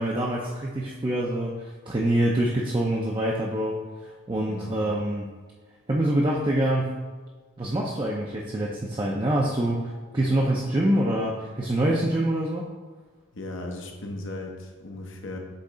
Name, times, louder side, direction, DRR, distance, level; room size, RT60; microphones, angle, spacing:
voice 1, 0.0-5.3 5.9-7.0 7.6-12.7, right 1 dB, 20° right, -3 dB, 0.5 m, -25 dB
voice 2, 4.5-4.8 13.3-15.4, left 2 dB, 60° left, 2 dB, 0.8 m, -36 dB
8.2 x 3.2 x 3.8 m, 1.4 s
head